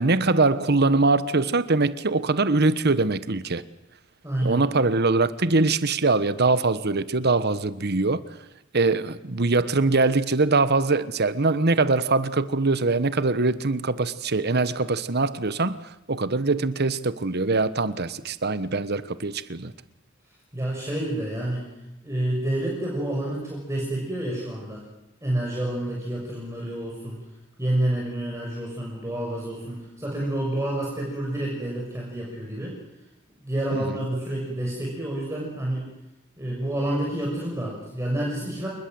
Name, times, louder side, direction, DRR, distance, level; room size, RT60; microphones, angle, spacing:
voice 1, 0.0-3.6 4.4-8.2 8.7-19.7 33.7-34.0, right 3 dB, 55° right, 1.2 m, -23 dB
voice 2, 4.2-4.6 20.5-21.7 22.0-24.8 25.2-27.2 27.6-32.8 33.4-35.9 36.4-38.7, right 1 dB, 15° right, 6.4 m, -29 dB
28.5 x 20.5 x 7.9 m
head